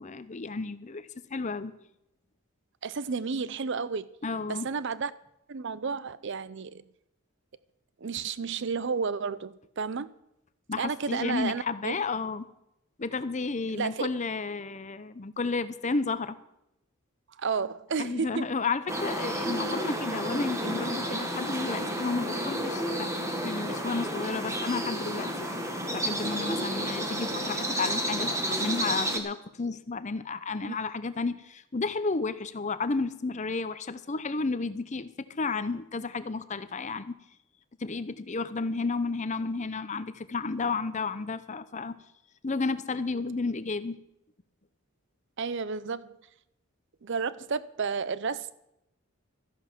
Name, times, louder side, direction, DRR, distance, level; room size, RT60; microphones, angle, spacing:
voice 1, 0.0-1.7 4.2-4.7 10.7-12.5 13.0-16.4 18.0-23.1 23.4-25.5 25.9-37.1 37.8-42.0 42.4-44.0, left 4 dB, 35° left, 0.7 m, -32 dB
voice 2, 2.8-4.1 4.5-5.1 5.5-6.8 8.0-10.1 10.8-12.0 13.7-14.1 17.4-18.5 30.7-30.8 45.4-46.1 47.0-48.5, right 5 dB, 55° right, 0.6 m, -32 dB
sound 1, 18.9-29.2, right 1 dB, 15° right, 1.5 m, -31 dB
14.0 x 10.5 x 6.0 m
head